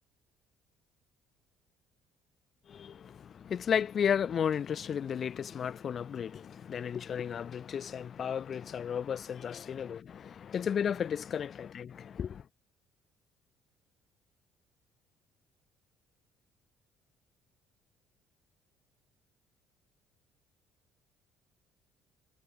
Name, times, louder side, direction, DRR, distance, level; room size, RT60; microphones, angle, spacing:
voice 1, 2.7-12.4, left 8 dB, 45° left, 5.9 m, -33 dB
cardioid pair, 90°, 0 cm